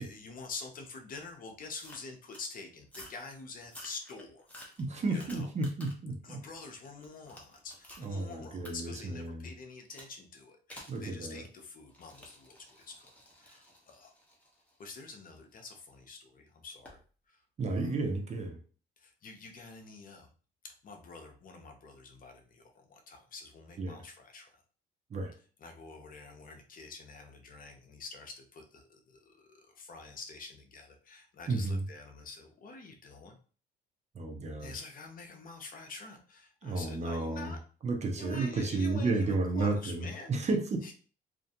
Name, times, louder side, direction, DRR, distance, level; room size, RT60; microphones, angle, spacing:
voice 1, 0.0-4.5 5.1-5.5 6.2-13.1 13.4-14.1 14.8-17.0 17.3-17.4 17.8-17.9 19.0-20.3 20.6-24.6 25.6-33.4 34.6-37.6 38.2-40.3 40.8-40.9, left 4 dB, 45° left, 4 dB, 0.6 m, -47 dB
sound 1, 1.8-2.5 2.9-3.2 3.6-6.1 6.5-8.1 8.6-8.7 9.9-10.1 10.7-11.0 11.9-15.8 16.8-17.0, left 1 dB, 5° left, 0.8 m, -52 dB
voice 2, 4.8-6.4 8.0-9.5 10.9-11.4 17.6-18.6 23.8-24.0 25.1-25.3 31.5-31.8 34.1-34.7 36.6-37.5 37.8-40.9, right 3 dB, 35° right, 4 dB, 0.6 m, -32 dB
2.4 x 2.2 x 2.7 m, 0.40 s
cardioid pair, 90°, 19 cm